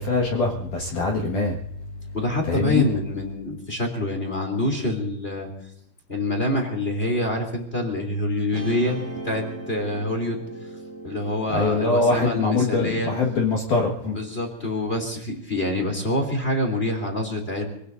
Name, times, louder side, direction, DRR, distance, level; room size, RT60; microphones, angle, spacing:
voice 1, 0.0-1.6 2.4-2.9 11.5-14.2, left 3 dB, 55° left, -1 dB, 2.8 m, -23 dB
voice 2, 2.1-5.5 6.1-10.4 11.0-13.1 14.1-17.7, left 1 dB, 15° left, 2 dB, 2.8 m, -26 dB
Guitar, 8.5-15.0, right 3 dB, 65° right, 4.9 m, -39 dB
27.0 x 18.5 x 2.7 m, 0.74 s
omnidirectional pair, 5.2 m